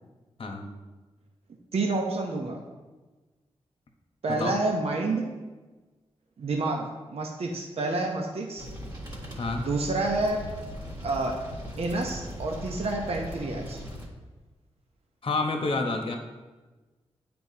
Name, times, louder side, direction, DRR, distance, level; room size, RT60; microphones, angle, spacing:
voice 1, 1.7-2.6 4.2-5.3 6.4-8.7 9.6-10.4 11.0-11.4 11.8-13.8, right 2 dB, 65° right, 1 dB, 0.8 m, -28 dB
sound 1, 8.6-14.1, equal, 40° right, 1.8 m, -39 dB
voice 2, 9.4-9.7 15.2-16.2, left 3 dB, 55° left, 4 dB, 1.0 m, -29 dB
9.5 x 4.3 x 2.8 m, 1.2 s
cardioid pair, 70°, 11 cm